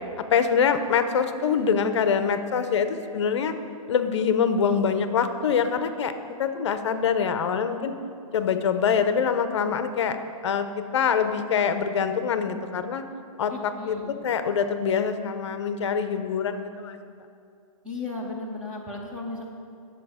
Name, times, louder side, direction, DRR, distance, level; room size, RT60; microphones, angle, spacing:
voice 1, 0.2-3.5 3.9-6.1 6.4-7.9 8.3-10.2 10.4-13.0 13.4-14.0 14.2-17.0, left 6 dB, 55° left, 9 dB, 0.6 m, -24 dB
voice 2, 13.5-14.2 17.8-19.5, left 2 dB, 5° right, -3 dB, 0.4 m, -35 dB
10.0 x 6.9 x 4.9 m, 2.4 s
hypercardioid pair, 170°, 18 cm